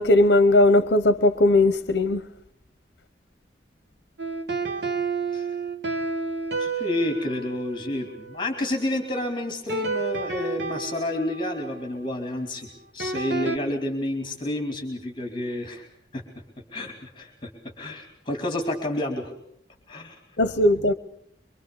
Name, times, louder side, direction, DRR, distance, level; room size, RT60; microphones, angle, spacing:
voice 1, 0.0-2.2 20.4-20.9, left 1 dB, 65° left, 0.9 m, -18 dB
sound 1, 4.2-9.0 9.7-13.6, right 4 dB, 70° right, 1.6 m, -31 dB
voice 2, 6.6-12.7 12.9-15.9 16.1-16.2 16.7-17.5 17.8-19.3 19.9-20.2, left 1 dB, 25° left, 2.9 m, -30 dB
24.5 x 24.0 x 6.9 m
head